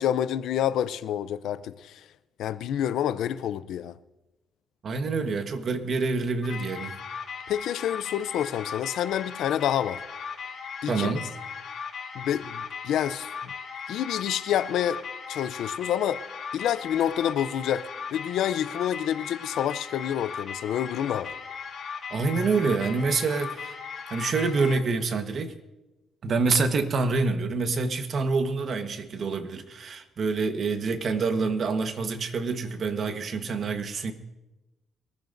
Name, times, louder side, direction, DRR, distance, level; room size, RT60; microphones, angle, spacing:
voice 1, 0.0-2.1 2.4-4.0 7.5-10.0 10.8-11.2 12.1-13.5 13.9-15.0 15.3-16.2 16.5-21.3, left 10 dB, 80° left, 0.5 m, -28 dB
voice 2, 4.8-6.9 10.9-11.3 22.1-23.8 24.1-25.5 26.2-34.1, right 4 dB, 55° right, 1.3 m, -27 dB
sound 1, 6.4-24.8, left 6 dB, 55° left, 4.7 m, -37 dB
22.5 x 14.0 x 2.6 m
cardioid pair, 90°, 0 cm